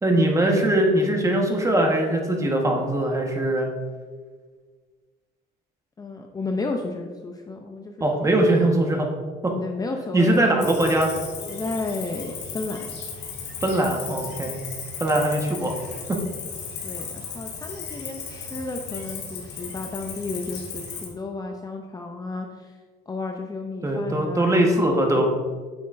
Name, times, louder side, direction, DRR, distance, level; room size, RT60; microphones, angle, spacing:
voice 1, 0.0-3.7 8.0-9.1 9.4-9.5 10.1-11.1 13.6-14.5 15.0-15.8 23.8-25.3, right 1 dB, 20° right, 1 dB, 1.3 m, -21 dB
voice 2, 6.0-8.7 9.5-10.4 11.5-13.0 14.3-14.5 16.8-22.7 23.1-24.6 25.2-25.3, left 3 dB, 20° left, 3 dB, 0.6 m, -33 dB
Cricket, 10.6-21.1, left 5 dB, 90° left, 2.0 m, -36 dB
9.5 x 6.2 x 2.6 m, 1.5 s
cardioid pair, 110°, 17 cm